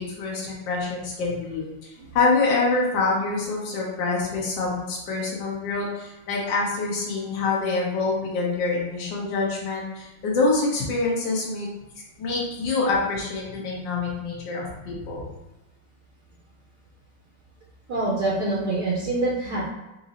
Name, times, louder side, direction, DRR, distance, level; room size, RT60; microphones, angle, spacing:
voice 1, 0.0-11.7 12.2-15.2, left 3 dB, 65° left, -4 dB, 1.6 m, -26 dB
voice 2, 17.9-19.7, right 2 dB, 60° right, -5 dB, 1.2 m, -25 dB
4.0 x 2.5 x 4.1 m, 1.0 s
omnidirectional pair, 2.2 m